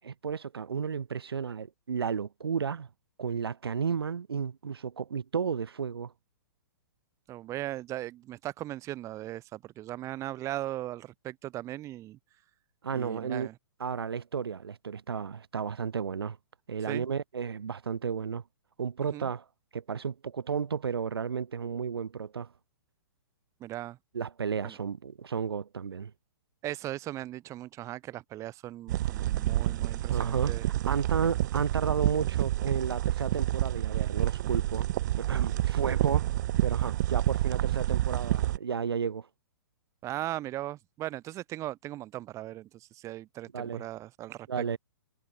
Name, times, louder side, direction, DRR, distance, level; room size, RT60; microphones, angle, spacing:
voice 1, 0.1-2.9 3.2-6.1 12.8-13.5 13.8-16.4 16.7-18.4 18.8-19.5 19.7-22.5 24.1-26.1 30.1-30.6 30.9-34.9 35.2-36.3 36.6-39.3 43.5-43.8 44.5-44.8, right 6 dB, 90° right, 1.9 m, -32 dB
voice 2, 7.3-12.2 12.9-13.5 16.9-17.0 19.1-19.3 23.6-24.0 24.6-24.8 26.6-30.7 40.0-44.8, right 14 dB, 25° right, 2.7 m, -38 dB
sound 1, 28.9-38.6, right 14 dB, 50° right, 1.4 m, -28 dB
hypercardioid pair, 140°, 12 cm